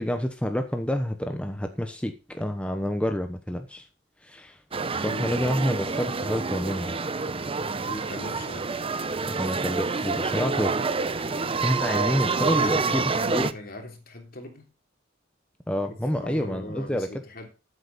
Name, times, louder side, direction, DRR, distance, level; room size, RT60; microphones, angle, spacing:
voice 1, 0.0-3.9 4.2-4.6 4.9-6.9 9.3-10.8 11.2-13.0 13.3-13.5 15.7-17.1, equal, 5° left, 1.0 m, -28 dB
sound 1, 4.7-13.5, right 4 dB, 30° right, 0.7 m, -28 dB
voice 2, 5.1-5.4 7.8-8.7 12.5-14.7 15.8-17.5, left 2 dB, 50° left, 3.3 m, -40 dB
13.5 x 8.2 x 4.2 m
head